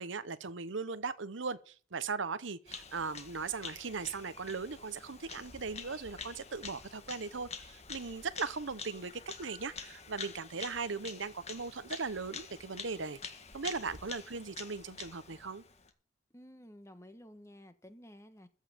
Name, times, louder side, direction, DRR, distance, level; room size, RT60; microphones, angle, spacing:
voice 1, 0.0-13.2 13.5-15.6, right 4 dB, 75° right, 0.9 m, -38 dB
Bird vocalization bird call bird song, 2.7-15.9, left 5 dB, 35° left, 1.6 m, -47 dB
voice 2, 16.3-18.5, equal, 15° left, 1.3 m, -53 dB
15.0 x 5.6 x 8.9 m
head